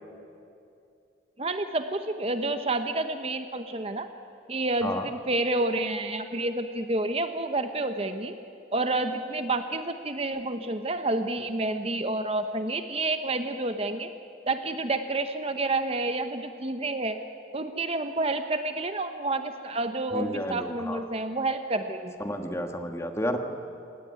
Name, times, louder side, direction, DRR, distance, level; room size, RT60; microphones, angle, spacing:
voice 1, 1.4-4.1 4.5-8.3 8.7-14.1 14.5-17.2 17.5-22.1, right 2 dB, 30° right, 8 dB, 0.9 m, -29 dB
voice 2, 20.1-21.0 22.2-23.4, equal, 15° left, 5 dB, 1.5 m, -31 dB
27.0 x 18.0 x 9.6 m, 2.6 s
head